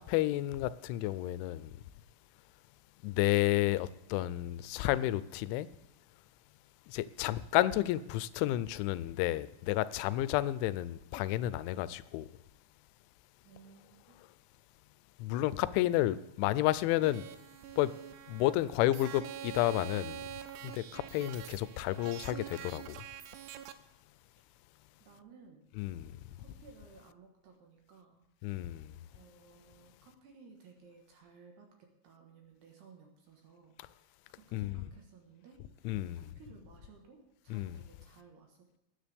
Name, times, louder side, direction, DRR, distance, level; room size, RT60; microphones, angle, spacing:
voice 1, 0.0-1.7 3.0-5.7 6.9-12.3 15.2-17.3 17.8-17.9 18.3-20.2 20.6-23.0 25.8-26.1 28.4-28.8 34.5-34.9 35.9-36.2 37.5-37.8, left 15 dB, 90° left, 3.0 m, -31 dB
voice 2, 13.4-14.2 25.0-25.6 26.4-28.2 29.1-35.9 36.2-38.8, right 5 dB, 70° right, 3.2 m, -58 dB
sound 1, 17.0-23.7, right 10 dB, 90° right, 3.1 m, -46 dB
19.5 x 10.0 x 3.5 m
omnidirectional pair, 5.4 m